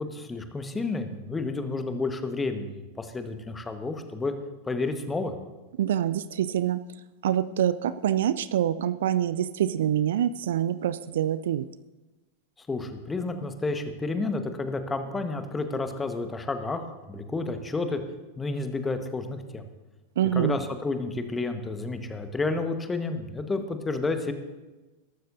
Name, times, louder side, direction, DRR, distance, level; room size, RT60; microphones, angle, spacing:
voice 1, 0.0-4.3 4.6-5.3 12.6-18.0 18.4-19.6 20.3-24.3, left 3 dB, 15° left, 7 dB, 1.4 m, -30 dB
voice 2, 5.8-6.8 7.2-11.7 20.2-20.6, right 10 dB, 60° right, 15 dB, 0.4 m, -25 dB
21.5 x 12.5 x 2.7 m, 1.2 s
figure-of-eight pair, 90°, 0 cm